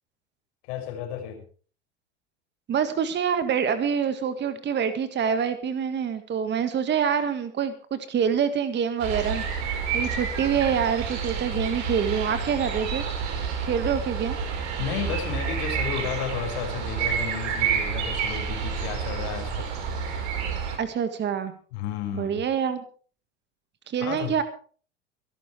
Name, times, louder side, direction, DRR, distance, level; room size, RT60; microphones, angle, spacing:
voice 1, 0.7-1.4 14.8-19.7 21.7-22.4 24.0-24.3, left 9 dB, 60° left, 4 dB, 6.0 m, -32 dB
voice 2, 2.7-9.4 9.9-13.1 13.6-14.4 20.8-21.5 22.1-22.8 23.9-24.4, right 7 dB, 30° right, 10 dB, 1.8 m, -26 dB
sound 1, 9.0-20.8, right 6 dB, 50° right, 4.6 m, -29 dB
24.5 x 12.0 x 3.4 m, 0.41 s
hypercardioid pair, 85°, 36 cm